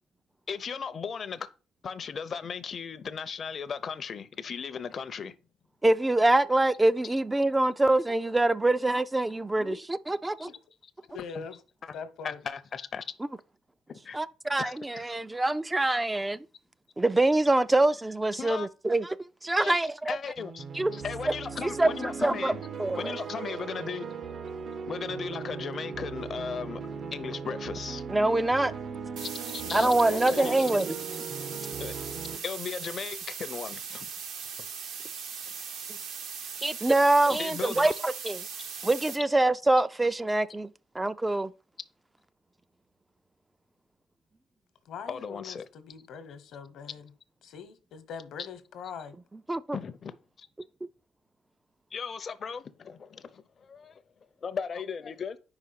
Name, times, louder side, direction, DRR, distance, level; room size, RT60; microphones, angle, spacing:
voice 1, 0.5-1.5 1.8-5.4 10.4-10.5 11.3-11.5 11.8-12.0 12.2-13.1 13.9-14.2 14.6-15.2 18.4-18.7 19.6-19.8 20.0-20.6 20.9-22.6 23.0-24.1 24.9-26.8 27.1-28.0 29.2-29.9 30.3-30.8 31.8-31.9 32.4-34.1 34.6-34.7 37.3-37.9 45.1-45.7 49.7-50.5 51.9-54.0 54.4-55.4, left 6 dB, 50° left, 0.6 m, -37 dB
voice 2, 5.8-10.5 14.1-16.4 17.0-19.1 19.4-19.9 20.7-20.9 21.8-21.9 22.2-22.5 22.8-23.1 28.1-28.7 29.7-30.9 36.6-38.4 38.8-40.7 40.9-41.5 49.5-49.6, right 2 dB, 15° right, 0.3 m, -24 dB
voice 3, 11.1-11.6 11.9-12.4 29.6-30.9 44.8-47.1 47.4-49.2, left 6 dB, 75° left, 1.0 m, -41 dB
sound 1, 20.4-32.4, right 5 dB, 55° right, 0.7 m, -38 dB
sound 2, 29.2-39.2, right 6 dB, 75° right, 1.1 m, -39 dB
4.9 x 4.8 x 5.7 m
cardioid pair, 90°, 0 cm